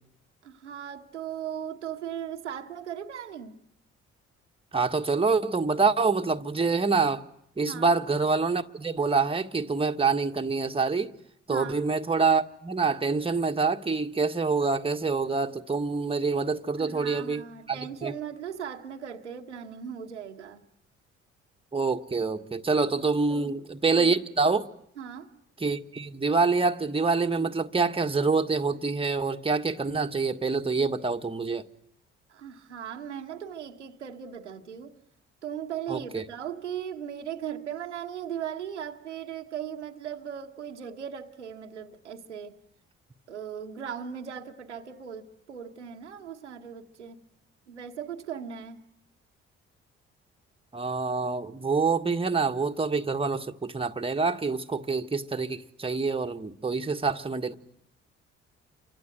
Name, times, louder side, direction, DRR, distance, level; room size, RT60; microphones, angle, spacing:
voice 1, 0.4-3.6 7.6-7.9 11.5-11.8 16.8-20.6 23.3-23.6 23.9-24.2 25.0-25.3 32.3-34.9 35.4-42.6 43.3-47.2 47.7-48.8, right 8 dB, 90° right, 1.2 m, -38 dB
voice 2, 4.7-7.2 7.6-11.1 11.5-18.1 21.7-24.7 25.6-31.6 35.9-36.2 50.7-57.5, right 4 dB, 15° right, 1.5 m, -26 dB
29.5 x 25.0 x 7.9 m
figure-of-eight pair, 40°, 34 cm